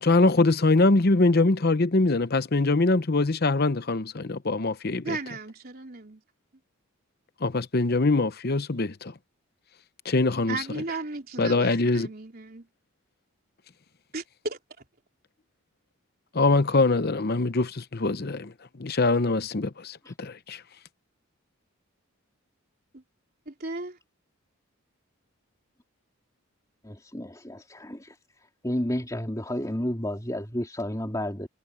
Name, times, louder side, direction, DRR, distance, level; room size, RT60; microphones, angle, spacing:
voice 1, 0.0-5.2 7.4-9.1 10.0-10.6 11.4-12.1 16.3-18.5 18.8-20.6, left 3 dB, 45° left, 0.8 m, -23 dB
voice 2, 5.0-6.2 10.5-12.7 14.1-14.6 22.9-23.0 23.5-24.0, right 3 dB, 45° right, 3.7 m, -35 dB
voice 3, 26.8-28.1 28.6-31.5, left 1 dB, 15° left, 3.5 m, -31 dB
head